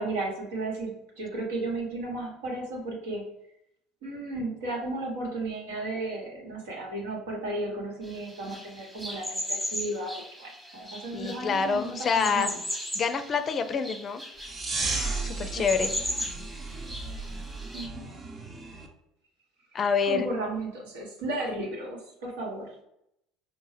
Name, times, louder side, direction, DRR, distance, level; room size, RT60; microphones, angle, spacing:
voice 1, 0.0-3.3 4.0-12.6 15.4-15.9 17.7-18.1 20.0-22.8, right 2 dB, 85° right, 0 dB, 1.1 m, -34 dB
sound 1, 8.0-17.9, equal, 5° right, 1.0 m, -37 dB
voice 2, 11.1-12.6 12.9-14.2 15.2-15.9 19.7-20.3, left 5 dB, 40° left, 8 dB, 0.4 m, -27 dB
sound 2, 14.4-18.9, right 3 dB, 35° right, 0.7 m, -34 dB
5.2 x 2.1 x 3.2 m, 0.80 s
hypercardioid pair, 80°, 0 cm